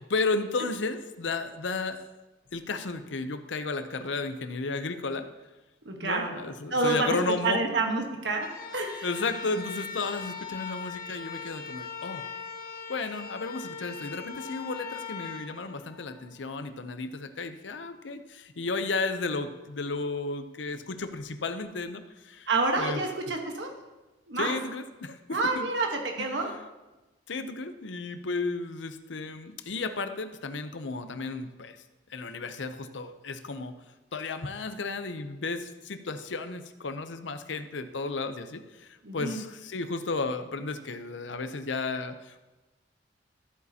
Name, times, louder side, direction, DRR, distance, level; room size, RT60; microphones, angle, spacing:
voice 1, 0.1-2.0 2.5-5.3 6.0-7.6 9.0-12.3 12.9-22.5 22.8-23.0 24.4-25.7 26.2-26.7 27.3-31.8 32.1-33.7 34.1-42.4, left 3 dB, 80° left, 9 dB, 0.7 m, -33 dB
voice 2, 5.8-6.3 6.7-7.2 7.4-9.1 22.5-23.7 24.3-24.5 25.3-25.9 26.2-26.5 39.0-39.4, right 3 dB, 70° right, 2 dB, 1.3 m, -28 dB
sound 1, 8.3-16.5, left 5 dB, 50° left, 1.0 m, -40 dB
13.5 x 8.2 x 2.9 m, 1.1 s
head